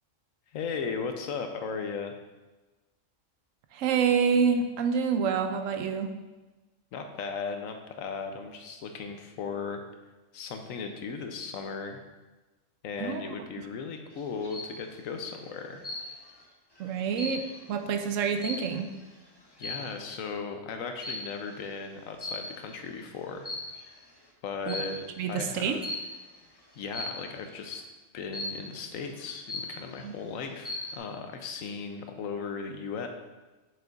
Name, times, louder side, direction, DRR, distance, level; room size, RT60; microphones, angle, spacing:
voice 1, 0.5-2.1 6.9-9.8 10.3-12.0 12.8-15.9 19.6-23.5 24.4-25.0 25.3-25.8 26.7-27.8 28.1-33.1, left 5 dB, 85° left, 5 dB, 1.1 m, -36 dB
voice 2, 3.7-6.1 13.0-13.3 16.8-18.9 24.7-24.8 25.2-25.8 30.0-30.1, right 6 dB, 75° right, 6 dB, 1.0 m, -27 dB
sound 1, 14.2-14.8 15.8-16.4 16.8-19.0 19.6-20.0 21.0-21.4 22.2-22.8 23.3-24.0 24.7-25.0 25.8-26.2 26.9-27.3 28.3-28.8 29.2-29.3 29.5-30.1 30.5-31.0, left 2 dB, 20° left, 0.8 m, -37 dB
6.7 x 6.2 x 2.5 m, 1.2 s
omnidirectional pair, 1.4 m